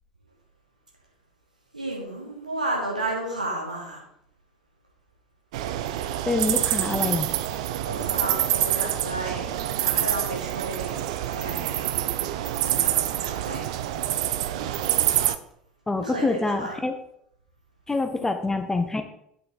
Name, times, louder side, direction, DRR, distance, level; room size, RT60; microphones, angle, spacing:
voice 1, 1.7-4.0 7.8-12.0 12.5-12.9 13.2-13.6 16.0-16.8 18.2-18.3, right 2 dB, 85° right, -2 dB, 2.3 m, -33 dB
sound 1, 5.5-15.4, right 13 dB, 60° right, 0.4 m, -26 dB
voice 2, 6.2-7.3 15.9-16.9 17.9-19.0, left 3 dB, 10° left, 7 dB, 0.9 m, -26 dB
8.9 x 5.6 x 4.1 m, 0.72 s
figure-of-eight pair, 70°, 4 cm